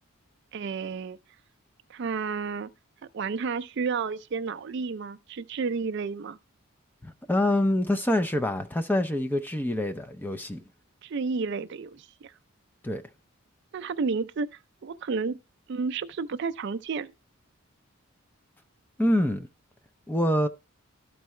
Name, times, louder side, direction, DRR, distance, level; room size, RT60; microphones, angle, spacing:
voice 1, 0.5-1.2 1.9-2.7 3.1-6.4 11.0-12.3 13.7-15.4 15.7-17.1, right 5 dB, 55° right, 0.4 m, -31 dB
voice 2, 7.0-10.6 12.8-13.0 19.0-19.5 20.1-20.5, left 1 dB, 10° left, 0.5 m, -26 dB
12.5 x 4.6 x 3.1 m
head